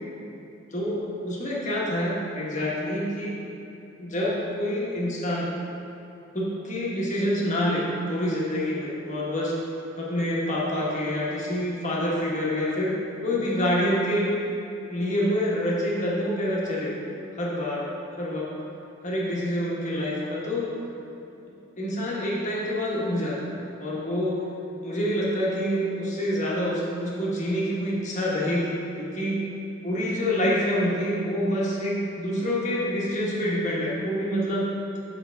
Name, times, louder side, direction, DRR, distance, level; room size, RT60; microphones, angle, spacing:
voice 1, 0.7-3.4 4.0-5.5 6.3-9.5 10.0-14.3 14.9-16.9 17.4-17.9 18.2-18.5 19.0-20.7 21.8-23.5 23.8-24.4 24.8-28.7 29.0-29.4 29.8-34.7, equal, 35° left, -5 dB, 1.3 m, -27 dB
6.8 x 6.7 x 3.5 m, 3.0 s
head